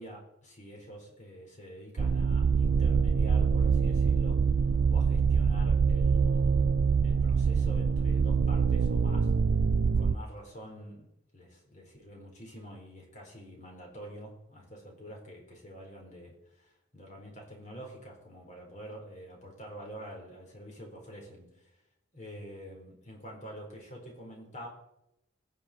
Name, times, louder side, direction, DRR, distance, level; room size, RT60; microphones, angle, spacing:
voice 1, 0.0-4.4 4.9-6.7 7.0-9.3 9.9-21.7 22.1-24.7, equal, 40° left, 0 dB, 4.4 m, -47 dB
sound 1, 2.0-10.1, right 5 dB, 55° right, 0.4 m, -25 dB
20.0 x 8.0 x 4.5 m, 0.84 s
head